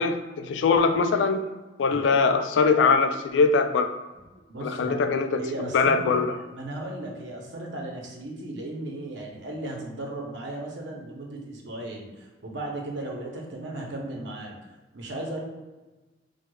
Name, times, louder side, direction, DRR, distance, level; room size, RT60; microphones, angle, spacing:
voice 1, 0.0-1.5 1.8-3.9 4.6-5.5 5.7-6.3, left 4 dB, 85° left, 8 dB, 0.3 m, -22 dB
voice 2, 4.5-5.0 5.4-6.1 6.5-14.5 14.9-15.4, right 1 dB, 80° right, 0 dB, 0.7 m, -36 dB
4.6 x 2.2 x 2.2 m, 1.2 s
head